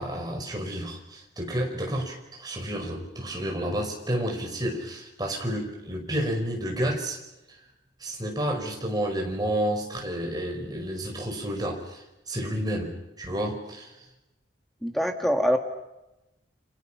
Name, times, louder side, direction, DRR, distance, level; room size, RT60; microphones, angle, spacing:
voice 1, 0.0-7.2 7.5-7.6 8.0-13.9, right 1 dB, 20° right, 1 dB, 5.3 m, -30 dB
voice 2, 14.8-15.6, equal, ahead, 4 dB, 1.6 m, -24 dB
30.0 x 26.5 x 5.9 m, 0.95 s
head